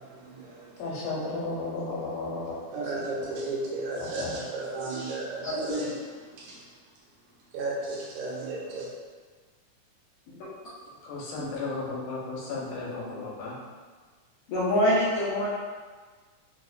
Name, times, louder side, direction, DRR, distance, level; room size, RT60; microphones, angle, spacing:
voice 1, 0.0-1.1 2.7-5.9 6.2-6.6 7.5-8.9, right 2 dB, 75° right, -4 dB, 2.0 m, -34 dB
voice 2, 0.8-2.6 4.0-4.3 11.0-13.6, left 3 dB, 85° left, -4 dB, 2.2 m, -34 dB
voice 3, 5.4-5.9 14.5-15.5, equal, 70° left, -13 dB, 1.6 m, -25 dB
4.9 x 2.1 x 2.4 m, 1.5 s
omnidirectional pair, 3.6 m